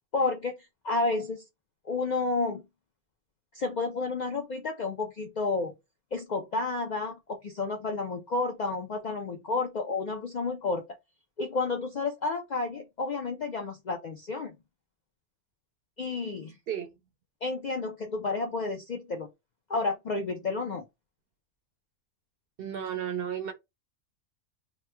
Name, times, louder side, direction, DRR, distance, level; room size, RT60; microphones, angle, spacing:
voice 1, 0.1-0.6 0.8-1.4 1.8-2.6 3.5-5.7 6.1-10.8 11.4-14.6 16.0-16.6 17.4-19.3 19.7-20.8, left 3 dB, 60° left, 0.4 m, -31 dB
voice 2, 22.6-23.5, right 9 dB, 60° right, 0.6 m, -33 dB
3.0 x 2.1 x 3.2 m
omnidirectional pair, 1.3 m